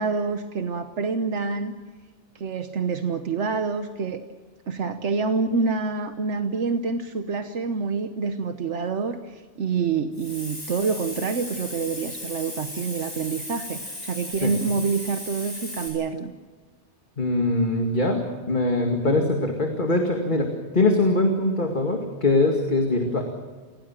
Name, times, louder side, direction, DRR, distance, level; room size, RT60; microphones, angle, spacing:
voice 1, 0.0-1.7 2.3-4.3 4.7-16.3, right 4 dB, 75° right, 7 dB, 1.4 m, -27 dB
Hiss, 10.1-15.9, left 1 dB, 60° left, 8.1 m, -36 dB
voice 2, 17.2-20.5 20.7-23.2, left 2 dB, 45° left, 2 dB, 2.4 m, -22 dB
29.5 x 17.0 x 7.5 m, 1.4 s
omnidirectional pair, 1.2 m